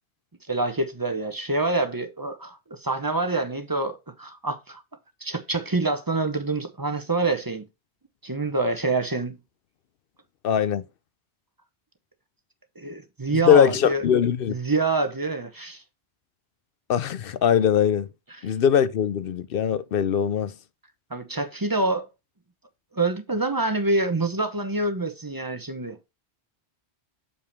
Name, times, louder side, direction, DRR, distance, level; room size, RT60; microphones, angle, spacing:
voice 1, 0.5-4.8 5.2-7.7 8.2-9.4 12.8-14.1 14.5-15.8 21.1-22.1 22.9-26.1, right 2 dB, 20° right, 0.7 m, -26 dB
voice 2, 10.4-10.8 13.3-14.5 16.9-18.1 18.4-20.5, left 8 dB, 65° left, 0.7 m, -21 dB
6.8 x 5.5 x 3.3 m
omnidirectional pair, 1.1 m